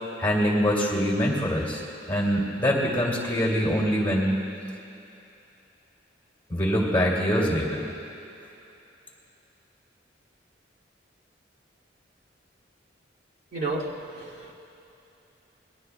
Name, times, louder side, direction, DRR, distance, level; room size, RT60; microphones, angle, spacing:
voice 1, 0.2-4.3 6.5-7.8, equal, 10° left, -3 dB, 2.3 m, -24 dB
voice 2, 13.5-13.9 14.2-14.5, right 2 dB, 60° right, -5 dB, 2.4 m, -31 dB
28.0 x 20.5 x 2.2 m, 2.9 s
head